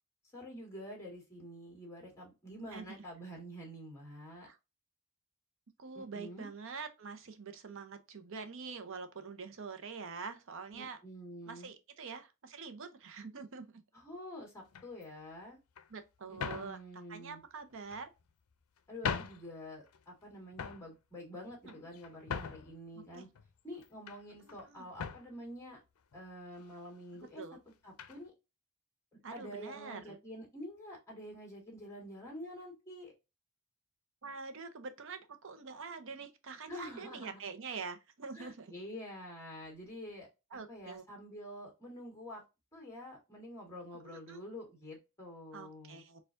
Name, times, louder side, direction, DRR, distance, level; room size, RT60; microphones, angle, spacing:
voice 1, 0.3-4.5 5.9-6.5 10.7-11.7 13.9-15.6 16.3-17.4 18.9-23.3 23.6-25.8 26.1-27.4 27.8-28.3 29.3-33.1 36.7-37.4 38.3-42.4 42.7-46.0, equal, 15° left, 1.7 m, -48 dB
voice 2, 5.8-11.0 11.5-13.8 15.9-16.8 17.1-18.1 21.7-21.8 22.9-23.3 24.5-24.9 27.4-27.6 29.2-30.2 34.2-38.8 40.5-41.0 44.0-44.4 45.5-46.2, right 5 dB, 65° right, 0.6 m, -45 dB
sound 1, 14.7-15.0 15.8-15.9 16.4-16.8 17.7-18.3 18.8-18.9 19.0-19.5 19.9-20.2 20.5-20.9 21.5-22.8 23.3-24.2 24.5-24.7 24.9-25.3 26.1-26.2 26.5-26.7 28.0-28.2, left 6 dB, 85° left, 0.5 m, -40 dB
4.3 x 2.3 x 2.5 m
head